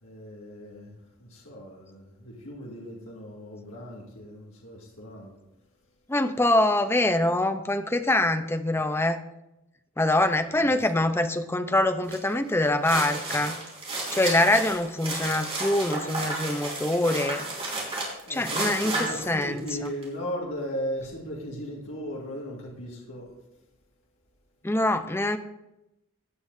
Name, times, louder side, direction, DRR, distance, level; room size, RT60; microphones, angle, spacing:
voice 1, 0.0-5.4 10.6-11.0 18.3-23.3, equal, 70° left, -4 dB, 2.2 m, -37 dB
voice 2, 6.1-9.2 10.0-13.6 14.1-17.4 18.3-19.9 24.6-25.4, left 1 dB, 10° left, 8 dB, 0.6 m, -24 dB
sound 1, 12.1-12.3 12.7-20.0, right 2 dB, 30° right, 3.4 m, -32 dB
16.0 x 9.4 x 2.7 m, 0.92 s
head